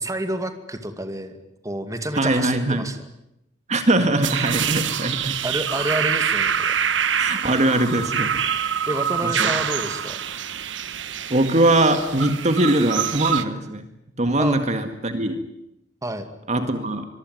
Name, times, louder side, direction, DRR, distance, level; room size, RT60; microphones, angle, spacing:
voice 1, 0.0-1.4 1.6-3.0 5.4-6.8 8.9-10.2 14.4-14.6 16.0-16.3, right 1 dB, 20° right, 8 dB, 2.3 m, -29 dB
voice 2, 2.1-2.9 3.7-5.4 7.2-8.3 9.2-9.5 11.3-13.8 14.2-15.4 16.5-17.1, right 1 dB, 40° right, 8 dB, 2.0 m, -21 dB
sound 1, 4.2-13.4, right 8 dB, 80° right, 1.4 m, -25 dB
25.0 x 22.5 x 9.4 m, 0.84 s
head